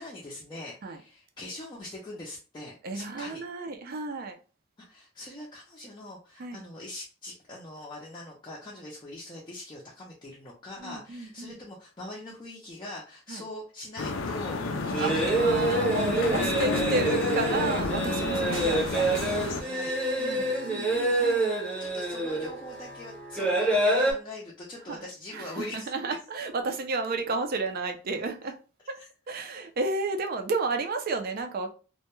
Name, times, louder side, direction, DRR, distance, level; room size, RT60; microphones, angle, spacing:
voice 1, 0.0-3.4 4.9-16.5 19.5-20.0 21.8-25.9 29.0-29.1, left 1 dB, 20° left, 0.5 m, -43 dB
voice 2, 2.8-4.4 6.4-6.6 10.8-11.5 13.3-13.4 15.0-19.3 20.2-21.5 24.9-25.0 25.3-28.6 28.9-29.0 29.3-31.7, right 3 dB, 45° right, 0.4 m, -32 dB
sound 1, 14.0-19.6, left 3 dB, 80° left, 0.4 m, -30 dB
sound 2, 14.6-24.1, right 2 dB, 5° left, 0.8 m, -27 dB
sound 3, 18.5-22.4 23.0-23.1 23.4-23.5 23.8-23.9 24.0-24.1, right 2 dB, 80° right, 0.8 m, -46 dB
2.2 x 2.1 x 2.9 m
head